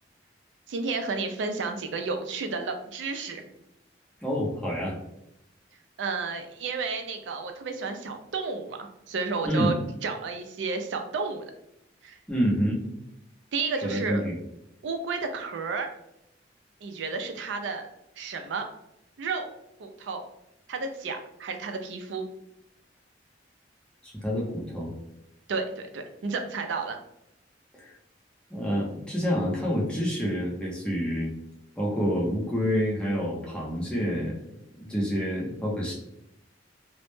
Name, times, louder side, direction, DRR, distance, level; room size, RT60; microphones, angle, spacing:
voice 1, 0.7-3.4 6.0-9.7 10.0-11.5 12.0-12.2 13.5-14.2 14.8-15.9 16.8-17.9 18.2-18.7 19.2-19.5 19.8-20.2 20.7-22.2 25.5-27.0, right 4 dB, 85° right, 6 dB, 0.4 m, -32 dB
voice 2, 4.2-5.0 9.4-9.7 12.3-12.8 13.8-14.3 24.0-24.9 27.8-27.9 28.5-31.3 31.8-34.4 34.8-35.9, equal, 5° left, -4 dB, 0.5 m, -28 dB
2.0 x 2.0 x 3.0 m, 0.83 s
head